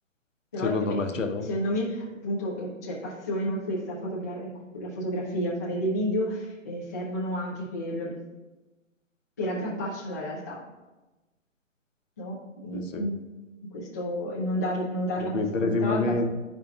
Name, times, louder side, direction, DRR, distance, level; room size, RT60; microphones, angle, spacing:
voice 1, 0.6-1.5 12.7-13.1 15.2-16.2, left 3 dB, 70° left, 5 dB, 1.0 m, -27 dB
voice 2, 1.4-8.1 9.4-10.6 12.2-12.4 12.6-13.2 13.7-15.3 15.6-16.2, equal, 15° left, -6 dB, 0.4 m, -30 dB
11.0 x 4.9 x 2.4 m, 1.1 s
hypercardioid pair, 145°, 39 cm